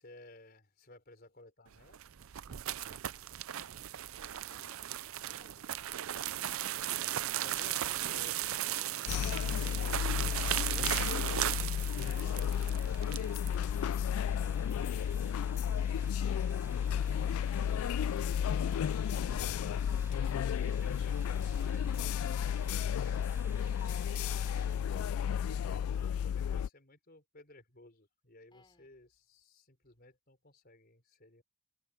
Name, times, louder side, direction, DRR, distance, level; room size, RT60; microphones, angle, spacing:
voice 1, 0.0-2.0 7.4-10.1 10.6-15.0 16.1-19.9 20.5-23.7 24.6-31.4, left 2 dB, 45° left, 4.4 m, -57 dB
sound 1, 1.8-13.5, right 12 dB, 80° right, 0.5 m, -36 dB
voice 2, 2.4-3.7 4.5-5.8 28.5-28.9, left 2 dB, 20° left, 5.2 m, -68 dB
sound 2, 6.9-25.0, right 2 dB, 10° right, 4.5 m, -57 dB
sound 3, 9.1-26.7, left 8 dB, 85° left, 0.3 m, -33 dB
head